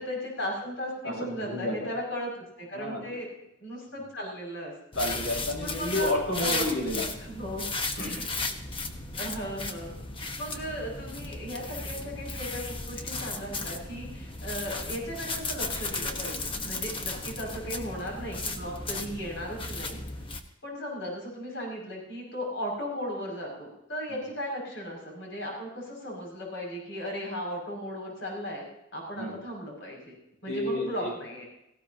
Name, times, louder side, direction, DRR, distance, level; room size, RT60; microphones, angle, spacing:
voice 1, 0.0-3.3 3.6-4.7 5.6-6.1 6.4-6.7 7.2-7.7 9.2-9.9 10.3-20.0 20.6-28.7 28.9-30.1 30.4-31.4, equal, 70° left, -1 dB, 6.1 m, -36 dB
voice 2, 1.0-1.9 2.7-3.0 5.0-7.1 8.0-8.3 24.1-24.2 29.2-29.4 30.5-31.1, left 1 dB, 85° left, -2 dB, 7.0 m, -31 dB
sound 1, 4.9-20.4, left 3 dB, 25° left, 1.0 m, -35 dB
17.5 x 16.0 x 2.8 m, 0.83 s
head